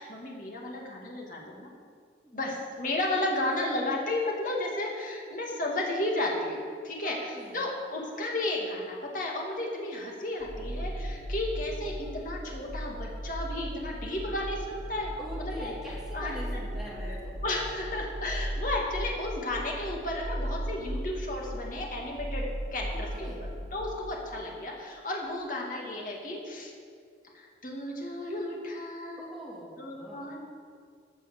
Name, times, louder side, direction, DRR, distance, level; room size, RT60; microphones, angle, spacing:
voice 1, 0.0-1.7 2.3-15.8 16.1-16.7 17.0-17.2 17.4-26.7 27.3-29.3 29.8-30.4, left 1 dB, 45° left, -1 dB, 2.2 m, -33 dB
voice 2, 2.2-2.5 7.0-7.6 15.2-17.3 22.9-23.5 29.2-30.2, equal, ahead, -6 dB, 2.9 m, -43 dB
sound 1, 10.4-24.1, equal, 60° right, 3.6 m, -37 dB
15.0 x 6.2 x 7.0 m, 2.1 s
head